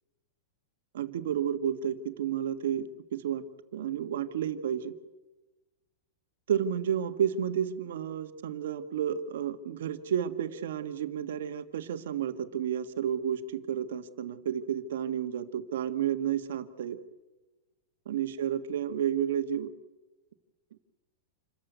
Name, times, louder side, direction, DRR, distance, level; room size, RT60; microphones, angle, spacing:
voice 1, 0.9-3.4 3.7-4.9 6.5-17.0 18.1-19.7, right 9 dB, 70° right, 8 dB, 1.7 m, -31 dB
28.0 x 14.5 x 8.1 m, 1.1 s
supercardioid pair, 175°, 0 cm